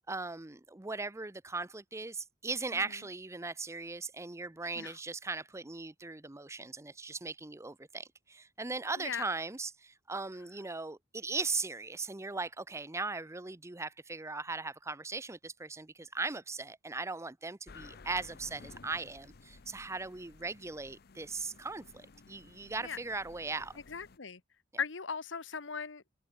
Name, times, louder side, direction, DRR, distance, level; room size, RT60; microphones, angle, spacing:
voice 1, 0.1-23.8, right 3 dB, 15° right, 0.7 m, -39 dB
sound 1, 17.7-24.2, left 4 dB, 55° left, 0.8 m, -55 dB
voice 2, 23.9-24.4 24.8-26.0, left 6 dB, 80° left, 1.2 m, -38 dB
head